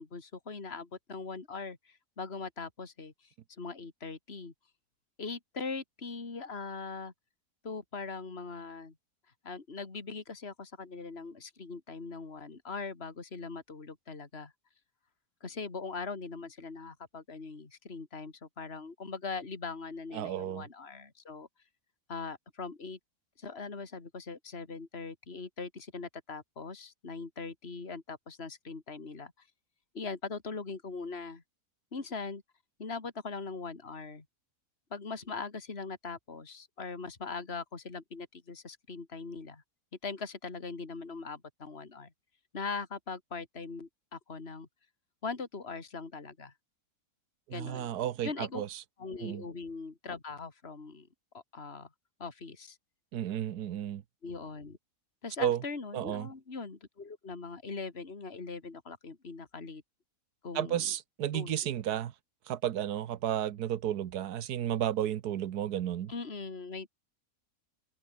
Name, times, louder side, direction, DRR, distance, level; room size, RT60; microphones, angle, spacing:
voice 1, 0.0-4.5 5.2-7.1 7.6-8.9 9.4-14.5 15.4-21.5 22.1-23.0 23.4-29.5 29.9-31.4 31.9-32.4 32.8-34.2 34.9-39.6 40.0-42.1 42.5-44.7 45.2-46.5 47.5-47.9 48.2-48.6 49.0-51.1 51.3-51.9 52.2-52.8 54.2-54.8 55.2-59.8 60.4-60.8 61.3-61.5 66.1-66.9, left 4 dB, 40° left, 2.9 m, -41 dB
voice 2, 20.1-20.7 47.5-48.8 49.2-49.4 53.1-54.0 55.4-55.6 55.9-56.3 60.5-62.1 62.5-66.1, right 11 dB, 85° right, 1.5 m, -32 dB
omnidirectional pair, 1.6 m